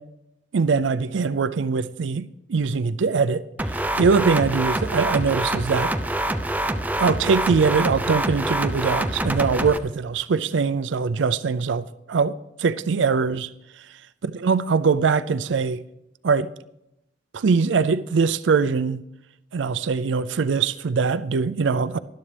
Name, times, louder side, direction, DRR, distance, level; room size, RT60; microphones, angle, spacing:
voice 1, 0.5-3.4 3.9-5.9 7.0-13.5 14.4-15.8 16.2-16.5 17.3-19.0 19.5-22.0, right 5 dB, 80° right, 0.5 m, -22 dB
sound 1, 3.6-9.8, right 1 dB, 10° right, 0.6 m, -25 dB
19.5 x 12.0 x 3.4 m
head